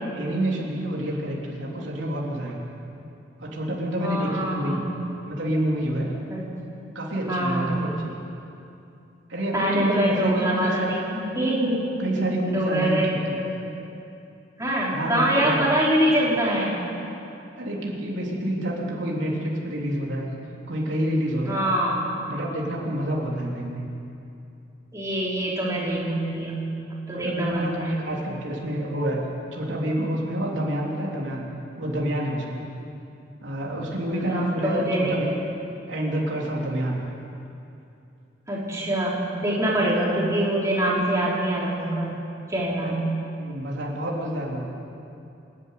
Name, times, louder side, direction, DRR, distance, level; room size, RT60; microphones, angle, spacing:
voice 1, 0.1-2.7 3.4-4.8 5.3-6.1 7.0-8.2 9.3-10.9 12.0-13.4 14.9-15.7 17.6-20.3 20.7-21.7 22.3-23.8 27.1-29.3 29.5-31.5 31.8-32.6 33.4-35.4 35.9-37.0 42.8-42.9 43.4-44.6, right 1 dB, 75° right, -3 dB, 3.4 m, -28 dB
voice 2, 4.0-4.8 6.3-6.4 6.7-6.8 7.3-7.8 9.5-11.9 12.5-13.5 14.6-16.8 21.4-22.0 24.9-26.6 27.1-27.9 34.1-35.1 38.5-42.2 42.5-43.0, right 1 dB, 15° right, -6 dB, 4.2 m, -24 dB
28.0 x 11.0 x 9.4 m, 2.7 s
head